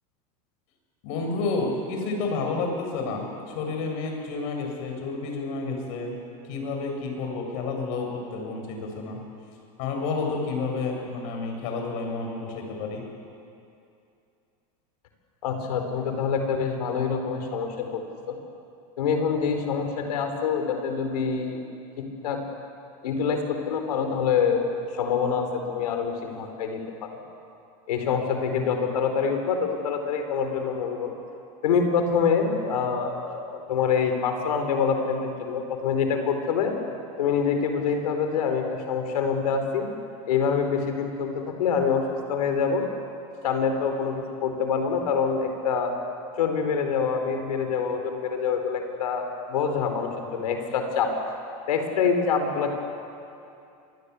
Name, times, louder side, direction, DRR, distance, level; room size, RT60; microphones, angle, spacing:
voice 1, 1.0-6.2 6.5-9.2 9.8-13.0, left 3 dB, 65° left, 2 dB, 7.6 m, -30 dB
voice 2, 15.4-18.4 19.0-21.6 22.0-22.4 23.0-27.2 27.9-31.1 31.6-36.7 37.2-39.9 40.3-42.8 43.4-45.9 46.4-49.2 49.5-51.1 51.7-52.7, left 6 dB, 90° left, 5 dB, 4.4 m, -26 dB
26.0 x 21.5 x 8.4 m, 2.6 s
supercardioid pair, 125°, 19 cm